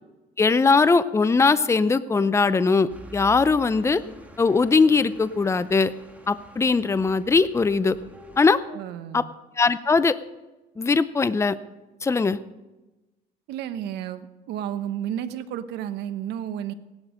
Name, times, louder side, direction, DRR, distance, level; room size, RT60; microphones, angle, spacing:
voice 1, 0.4-4.0 4.4-5.9 6.3-8.0 8.4-8.6 9.1-9.2 9.6-10.1 10.8-11.5 12.0-12.4, left 4 dB, 15° left, 14 dB, 0.6 m, -20 dB
sound 1, 2.9-8.4, right 2 dB, 10° right, 2.6 m, -47 dB
voice 2, 8.7-9.3 13.5-16.7, right 10 dB, 85° right, 11 dB, 1.1 m, -32 dB
16.5 x 11.5 x 5.2 m, 1.1 s
cardioid pair, 110°, 17 cm